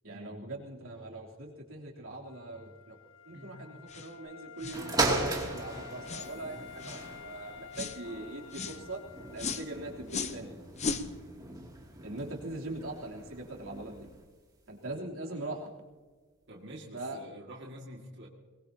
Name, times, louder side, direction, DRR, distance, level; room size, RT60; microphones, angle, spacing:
voice 1, 0.0-3.0 3.2-9.0 9.3-10.5 12.0-14.1 14.7-15.7 16.9-17.2, right 2 dB, 90° right, -2 dB, 3.3 m, -41 dB
Wind instrument woodwind instrument, 2.2-10.1, left 7 dB, 65° left, 1.0 m, -50 dB
sound 1, 3.9-4.1 4.6-4.8 5.3-5.5 6.1-6.3 6.8-7.1 7.7-8.0 8.5-8.8 9.4-9.7 10.1-10.4 10.8-11.1, left 4 dB, 35° left, 0.8 m, -36 dB
sound 2, 4.7-14.3 14.9-15.0, right 2 dB, 20° right, 2.6 m, -37 dB
voice 2, 16.5-18.3, right 1 dB, 60° right, -2 dB, 2.1 m, -47 dB
23.5 x 20.5 x 2.9 m, 1.4 s
head